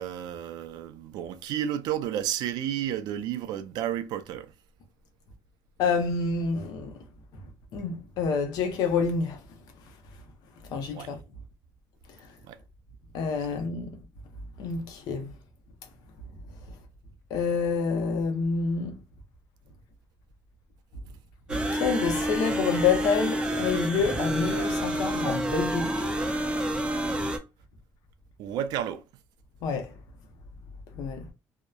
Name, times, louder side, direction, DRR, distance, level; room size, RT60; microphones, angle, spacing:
voice 1, 0.0-4.5 10.9-11.1 12.4-12.6 28.4-29.2, right 10 dB, 85° right, 0.4 m, -32 dB
voice 2, 5.8-7.0 7.7-9.4 10.6-11.2 13.1-13.9 14.6-15.3 17.3-19.0 21.7-26.1 29.6-29.9 30.9-31.3, left 5 dB, 75° left, 0.7 m, -28 dB
sound 1, 21.5-27.4, right 1 dB, 15° right, 0.4 m, -28 dB
2.8 x 2.0 x 2.3 m
cardioid pair, 150°, 7 cm